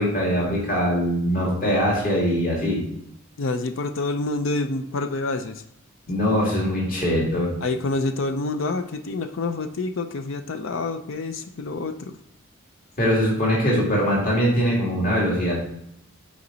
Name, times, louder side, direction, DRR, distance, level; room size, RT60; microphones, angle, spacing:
voice 1, 0.0-2.8 6.1-7.5 13.0-15.5, equal, 45° left, -4 dB, 2.5 m, -22 dB
voice 2, 3.4-5.6 7.6-12.2, left 3 dB, 65° left, 9 dB, 0.5 m, -27 dB
8.4 x 5.0 x 3.9 m, 0.75 s
head